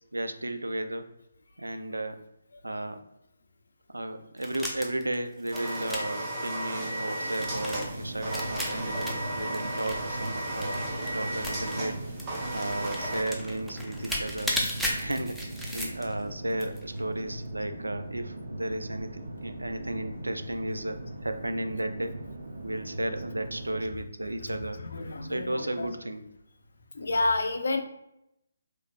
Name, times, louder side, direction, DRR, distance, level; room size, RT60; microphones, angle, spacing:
voice 1, 0.1-1.1 1.6-2.2 2.6-3.0 3.9-12.0 12.5-14.6 15.0-15.4 15.7-22.1 22.6-24.8 25.3-26.2, right 1 dB, 85° right, 9 dB, 0.4 m, -34 dB
sound 1, 4.4-11.1 11.4-11.8 12.2-16.2 16.5-17.0, equal, ahead, 0.5 m, -35 dB
sound 2, 5.5-13.2, right 1 dB, 25° right, 1.1 m, -34 dB
sound 3, 7.4-23.8, right 1 dB, 65° right, 0.7 m, -40 dB
voice 2, 24.7-25.9 26.9-27.8, left 2 dB, 65° left, 6 dB, 0.4 m, -29 dB
3.2 x 3.1 x 2.4 m, 0.83 s
figure-of-eight pair, 145°, 0 cm